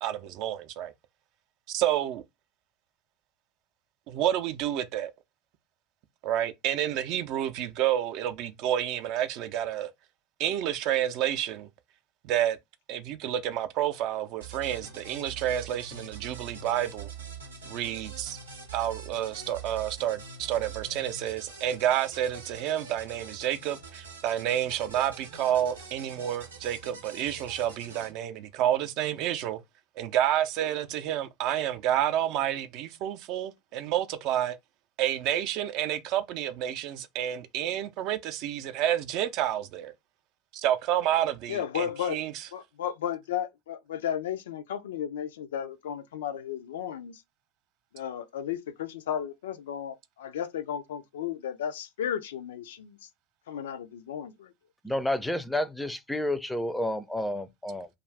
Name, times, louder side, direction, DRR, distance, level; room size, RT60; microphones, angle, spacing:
voice 1, 0.0-0.9 1.7-2.2 4.1-5.1 6.2-9.9 10.4-11.7 12.2-12.6 12.9-17.1 17.7-18.4 18.7-29.6 30.0-34.6 35.0-39.9 40.5-42.5, right 11 dB, 55° right, 0.4 m, -29 dB
sound 1, 14.4-28.1, right 5 dB, 90° right, 0.7 m, -44 dB
voice 2, 41.5-42.2 42.5-47.2 47.9-53.0 53.5-54.5, left 9 dB, 75° left, 0.3 m, -34 dB
voice 3, 54.8-57.9, left 1 dB, 5° left, 0.4 m, -30 dB
2.4 x 2.3 x 3.2 m
hypercardioid pair, 80°, 0 cm